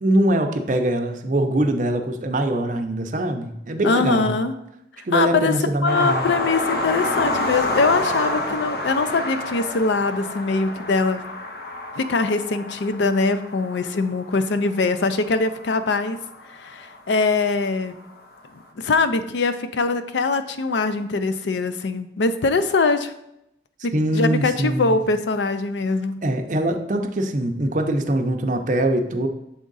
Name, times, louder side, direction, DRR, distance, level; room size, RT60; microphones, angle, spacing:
voice 1, 0.0-4.3 5.0-6.3 23.9-25.0 26.2-29.3, right 1 dB, 45° right, 5 dB, 0.5 m, -22 dB
voice 2, 3.8-4.5 5.0-5.5 5.8-11.2 12.0-16.2 16.5-17.9 18.8-23.1 23.8-26.2, left 3 dB, 80° left, 10 dB, 0.5 m, -22 dB
sound 1, 5.9-16.9 17.9-18.0 18.4-18.5, left 2 dB, 55° left, 0.8 m, -28 dB
7.2 x 3.7 x 3.9 m, 0.82 s
head